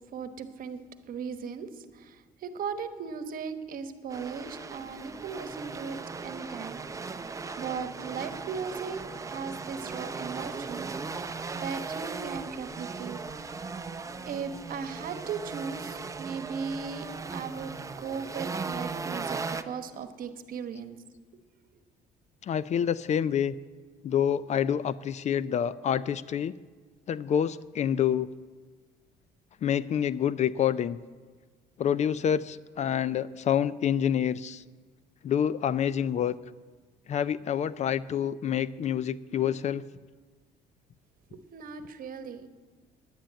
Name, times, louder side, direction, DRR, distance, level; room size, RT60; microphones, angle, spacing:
voice 1, 0.1-6.0 6.2-6.8 7.6-10.9 11.6-13.2 14.3-17.7 18.0-21.0 41.3-42.5, right 6 dB, 55° right, 10 dB, 1.1 m, -37 dB
sound 1, 4.1-19.6, right 4 dB, 20° right, 0.6 m, -38 dB
voice 2, 22.4-23.5 24.0-26.5 27.1-28.3 29.6-31.0 31.8-34.6 35.2-36.3 37.1-39.8, left 9 dB, 45° left, 18 dB, 0.4 m, -27 dB
10.5 x 10.0 x 8.8 m, 1.4 s
cardioid pair, 110°, 17 cm